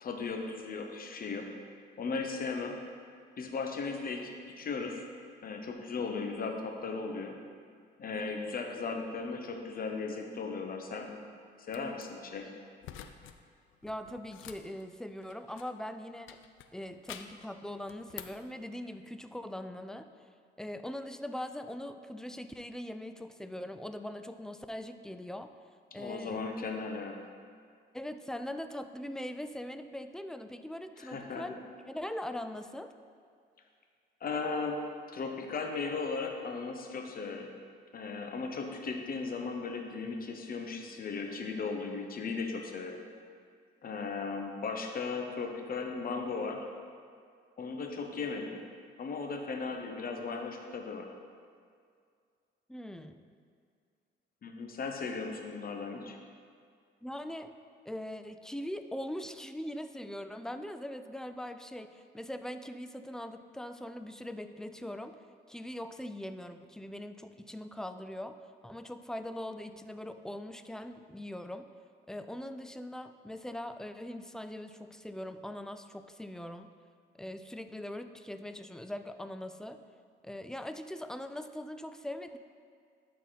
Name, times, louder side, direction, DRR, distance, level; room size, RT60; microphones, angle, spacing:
voice 1, 0.0-1.5 2.0-2.8 3.4-5.0 5.4-7.4 8.0-11.2 11.6-12.5 25.9-27.2 31.0-31.5 34.2-34.8 35.1-37.5 37.9-43.0 43.8-46.7 47.6-48.6 49.0-51.1 54.4-56.2, left 4 dB, 45° left, 3 dB, 1.0 m, -36 dB
sound 1, 11.7-12.0 12.8-13.4 13.7-15.8 16.3-17.5 17.9-18.5, left 10 dB, 85° left, 0.5 m, -48 dB
voice 2, 13.8-16.4 16.7-20.1 20.6-25.5 25.9-26.4 27.9-32.9 52.7-53.2 57.0-57.5 57.9-65.2 65.5-71.7 72.1-76.7 77.2-79.8 80.2-82.4, left 1 dB, 5° left, 9 dB, 0.4 m, -41 dB
12.0 x 4.2 x 4.1 m, 2.2 s
cardioid pair, 90°, 20 cm